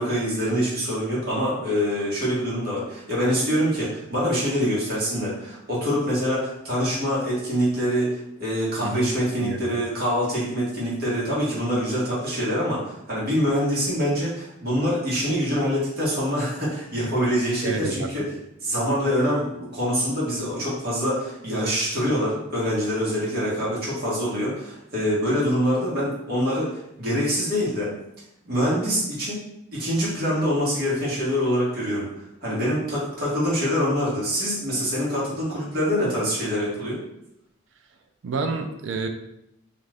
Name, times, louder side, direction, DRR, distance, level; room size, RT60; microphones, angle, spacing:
voice 1, 0.0-18.2 18.6-27.9 28.4-29.4 29.7-32.1 32.4-37.0, equal, 45° right, -7 dB, 1.2 m, -25 dB
voice 2, 8.8-9.1 9.4-9.8 17.6-18.3 38.2-39.1, right 4 dB, 65° right, 5 dB, 0.4 m, -29 dB
2.5 x 2.4 x 3.2 m, 0.83 s
head